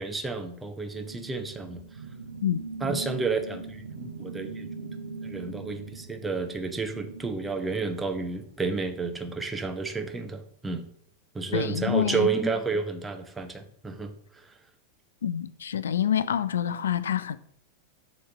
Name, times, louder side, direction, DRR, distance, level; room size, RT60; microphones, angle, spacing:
voice 1, 0.0-1.8 2.8-4.9 5.2-10.9 11.3-14.5, right 4 dB, 10° right, 0.8 m, -31 dB
sound 1, 0.9-8.7, right 4 dB, 75° right, 0.4 m, -41 dB
voice 2, 11.5-12.3 15.2-17.4, left 9 dB, 65° left, 0.4 m, -27 dB
7.0 x 3.2 x 6.1 m
figure-of-eight pair, 90°, 0 cm